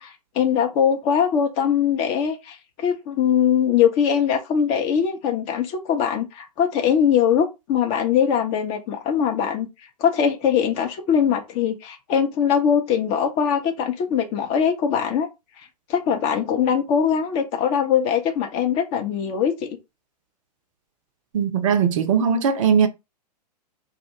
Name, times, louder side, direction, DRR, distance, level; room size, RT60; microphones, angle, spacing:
voice 1, 0.0-9.7 10.0-15.3 15.9-19.8, left 8 dB, 30° left, 0.5 m, -21 dB
voice 2, 21.3-22.9, right 7 dB, 50° right, 0.4 m, -19 dB
2.3 x 2.0 x 2.7 m
figure-of-eight pair, 105°, 21 cm